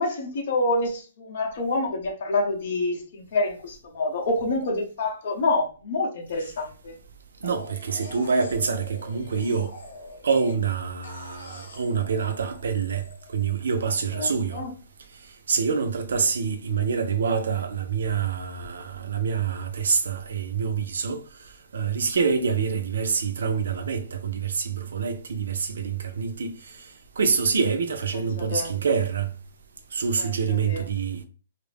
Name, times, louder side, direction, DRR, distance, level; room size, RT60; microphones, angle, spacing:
voice 1, 0.0-6.9 14.2-14.7 28.1-28.7 30.2-30.8, left 2 dB, 45° left, 0.7 m, -27 dB
sound 1, 7.4-10.7 11.0-13.9, left 2 dB, 75° left, 0.9 m, -45 dB
voice 2, 7.4-9.7 10.2-14.6 15.5-21.2 21.7-26.6 27.2-29.3 29.9-31.2, right 5 dB, 75° right, 0.5 m, -26 dB
2.4 x 2.0 x 3.2 m
hypercardioid pair, 175°, 0 cm